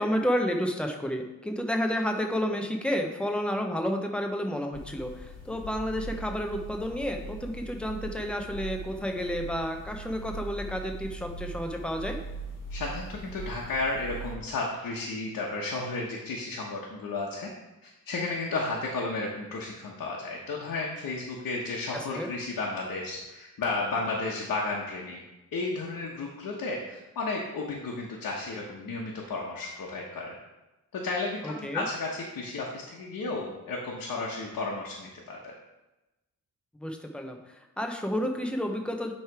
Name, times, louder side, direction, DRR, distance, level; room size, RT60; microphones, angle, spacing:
voice 1, 0.0-5.1 5.5-12.2 22.1-22.3 31.4-31.8 36.8-37.4 37.8-39.1, equal, 5° left, 3 dB, 0.6 m, -30 dB
sound 1, 4.7-14.4, right 3 dB, 50° left, 1.5 m, -40 dB
voice 2, 12.7-17.5 17.8-25.2 25.5-30.3 30.9-35.5, left 3 dB, 70° left, -3 dB, 1.1 m, -33 dB
9.6 x 3.3 x 4.7 m, 1.0 s
wide cardioid pair, 155°, 34 cm